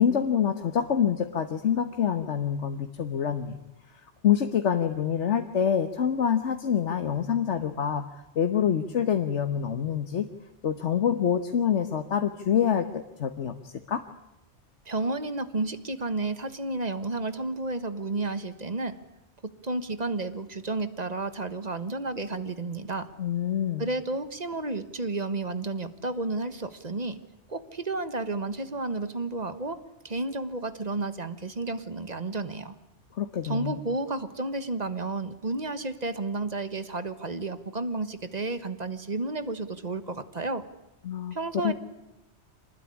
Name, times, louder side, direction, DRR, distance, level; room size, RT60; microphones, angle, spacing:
voice 1, 0.0-3.6 4.2-10.3 10.6-14.0 23.2-23.9 33.1-33.8 41.0-41.7, left 8 dB, 75° left, 7 dB, 1.4 m, -26 dB
voice 2, 14.8-19.0 19.6-23.1 23.8-27.2 27.5-29.8 30.0-32.7 33.4-40.6 41.3-41.7, right 2 dB, 35° right, 11 dB, 1.4 m, -31 dB
25.5 x 19.5 x 9.8 m, 0.95 s
omnidirectional pair, 1.2 m